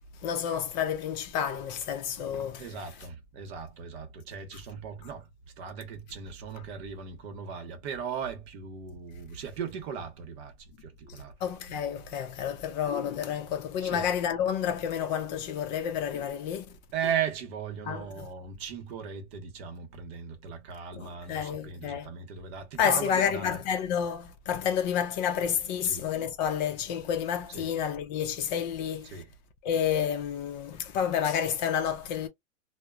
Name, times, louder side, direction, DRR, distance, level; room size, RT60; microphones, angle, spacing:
voice 1, 0.2-2.6 11.4-16.7 17.9-18.0 21.0-22.1 22.8-29.1 29.6-32.3, left 8 dB, 35° left, 0.5 m, -30 dB
voice 2, 2.6-5.3 5.6-11.4 13.8-14.1 16.9-23.6 25.8-26.1 27.5-27.7 29.0-29.3, right 7 dB, 50° right, 0.9 m, -37 dB
2.8 x 2.1 x 2.3 m
supercardioid pair, 150°, 40 cm